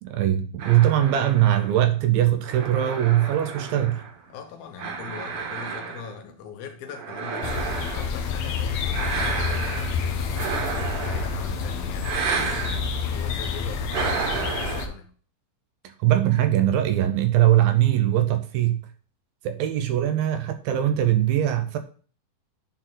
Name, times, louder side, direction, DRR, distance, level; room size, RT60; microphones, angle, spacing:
voice 1, 0.0-4.0 16.0-18.9 19.4-21.8, right 12 dB, 75° right, 2.3 m, -21 dB
sound 1, 0.6-4.3 4.8-6.3 6.9-8.2 8.9-10.0 10.4-11.6 12.0-12.8 13.9-14.8, right 5 dB, 60° right, 2.6 m, -31 dB
voice 2, 4.3-15.1, left 6 dB, 75° left, 2.7 m, -41 dB
sound 2, 7.4-14.9, left 5 dB, 90° left, 1.5 m, -28 dB
10.0 x 4.3 x 3.9 m
omnidirectional pair, 4.5 m